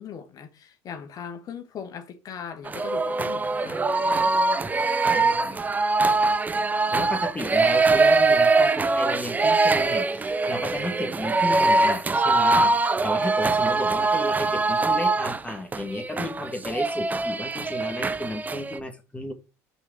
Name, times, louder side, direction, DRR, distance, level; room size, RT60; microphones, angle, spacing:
voice 1, 0.0-4.1 7.6-7.7, left 7 dB, 45° left, 1.4 m, -39 dB
sound 1, 2.7-18.8, right 3 dB, 20° right, 0.5 m, -22 dB
voice 2, 5.1-5.6 6.9-19.3, left 1 dB, 15° left, 1.5 m, -33 dB
5.3 x 4.1 x 4.8 m
hypercardioid pair, 65°, 9 cm